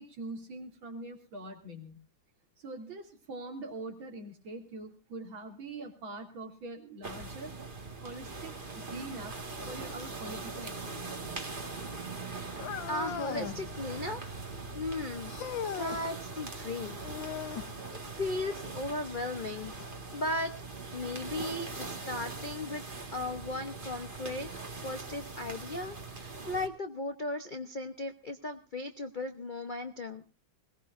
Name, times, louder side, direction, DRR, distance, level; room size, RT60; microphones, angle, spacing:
voice 1, 0.0-2.0 2.6-7.5 8.0-9.4 9.7-11.4, right 2 dB, 70° right, 3 dB, 3.6 m, -43 dB
sound 1, 7.0-26.7, right 3 dB, 25° right, 1.8 m, -41 dB
sound 2, 12.6-13.6 15.3-16.0 17.0-17.7 19.8-19.9 20.7-20.8 21.8-21.9, left 9 dB, 70° left, 1.7 m, -38 dB
voice 2, 12.9-14.2 14.7-15.3 15.8-17.0 18.1-19.7 20.1-20.5 20.9-22.8 23.1-24.5 24.8-30.2, left 2 dB, 45° left, 7 dB, 0.6 m, -36 dB
21.5 x 18.5 x 2.6 m, 0.33 s
omnidirectional pair, 2.2 m